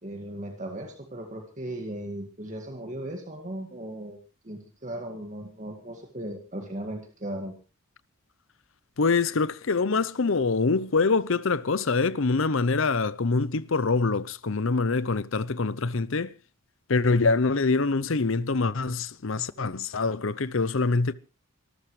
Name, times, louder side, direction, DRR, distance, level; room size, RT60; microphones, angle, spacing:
voice 1, 0.0-4.2 4.4-7.5, right 1 dB, 35° right, 2.0 m, -37 dB
voice 2, 9.0-16.3 16.9-21.1, left 4 dB, 60° left, 0.7 m, -25 dB
24.0 x 14.5 x 3.3 m
head